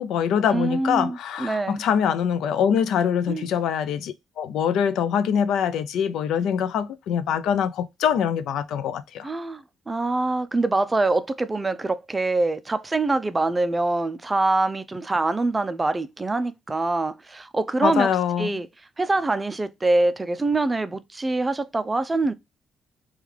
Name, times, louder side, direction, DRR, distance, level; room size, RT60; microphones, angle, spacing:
voice 1, 0.0-9.3 17.8-18.6, left 8 dB, 80° left, 0.4 m, -24 dB
voice 2, 0.5-1.8 3.3-3.4 9.2-18.1 18.4-18.7 19.0-22.3, right 2 dB, 20° right, 0.4 m, -24 dB
3.2 x 2.3 x 3.5 m
cardioid pair, 90°, 0 cm